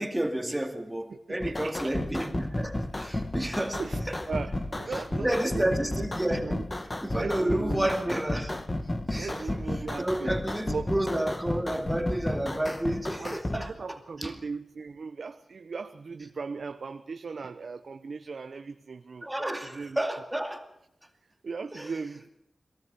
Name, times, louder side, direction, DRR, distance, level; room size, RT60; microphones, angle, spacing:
voice 1, 0.0-3.8 4.1-4.2 4.9-6.6 7.0-8.5 9.1-9.4 10.0-14.3 19.2-20.7 21.7-21.9, right 1 dB, 10° right, 2.3 m, -31 dB
voice 2, 1.1-1.9 3.8-5.7 5.9-6.7 7.1-7.9 9.1-10.3 10.7-10.9 13.2-20.0 21.4-22.3, right 4 dB, 70° right, 0.8 m, -38 dB
sound 1, 1.4-13.6, left 1 dB, 30° left, 1.9 m, -32 dB
22.0 x 17.5 x 6.9 m
wide cardioid pair, 75°, 0 cm